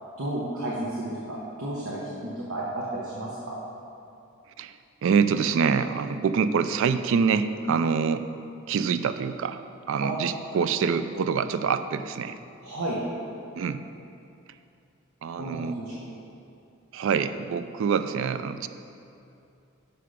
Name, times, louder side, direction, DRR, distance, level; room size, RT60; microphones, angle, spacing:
voice 1, 0.2-3.6 10.0-10.1 12.6-13.0 15.4-15.9, right 1 dB, 85° right, -6 dB, 1.1 m, -32 dB
voice 2, 4.6-8.3 8.7-9.6 9.9-12.4 13.5-13.8 15.2-15.8 16.9-18.7, right 6 dB, 65° right, 11 dB, 0.3 m, -25 dB
6.7 x 5.8 x 5.0 m, 2.6 s
head